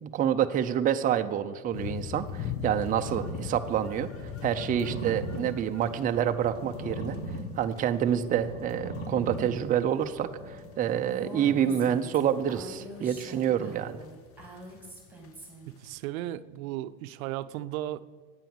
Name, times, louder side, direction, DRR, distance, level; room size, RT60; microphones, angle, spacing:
voice 1, 0.0-4.1 4.4-7.2 7.6-14.0, right 9 dB, 20° right, 8 dB, 0.5 m, -27 dB
sound 1, 1.7-8.4 8.7-11.5 11.8-11.9 12.1-15.5 15.9-16.0, left 8 dB, 35° left, 0.9 m, -41 dB
sound 2, 3.1-11.0, equal, 60° left, 3.0 m, -40 dB
voice 2, 4.9-5.2 11.4-11.7 15.7-18.0, right 14 dB, 80° right, 15 dB, 0.6 m, -36 dB
Female speech woman speaking, 11.1-15.7, equal, 5° right, 2.9 m, -45 dB
9.0 x 8.9 x 7.0 m, 1.4 s
supercardioid pair, 115°, 41 cm